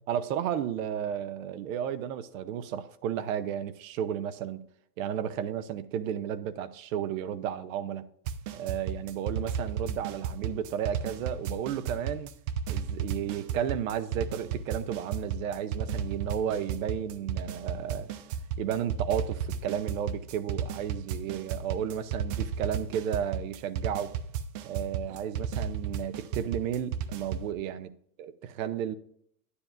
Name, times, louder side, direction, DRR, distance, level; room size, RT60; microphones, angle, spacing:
voice 1, 0.1-4.6 5.0-8.0 8.5-12.3 12.7-18.1 18.6-24.2 24.6-27.9 28.2-28.9, right 9 dB, 55° right, 0.8 m, -33 dB
sound 1, 8.3-27.5, right 7 dB, 35° right, 0.5 m, -34 dB
9.7 x 9.3 x 2.6 m
hypercardioid pair, 130°, 48 cm